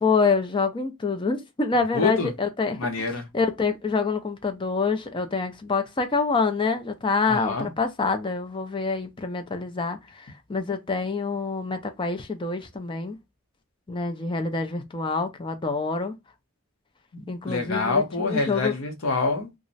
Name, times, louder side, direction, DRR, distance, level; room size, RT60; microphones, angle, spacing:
voice 1, 0.0-2.9 3.3-13.2 13.9-16.2 17.3-18.7, left 4 dB, 20° left, 0.4 m, -26 dB
voice 2, 1.9-2.3 2.8-3.3 7.3-7.7 17.1-19.5, left 3 dB, 65° left, 0.7 m, -26 dB
2.4 x 2.0 x 3.8 m
head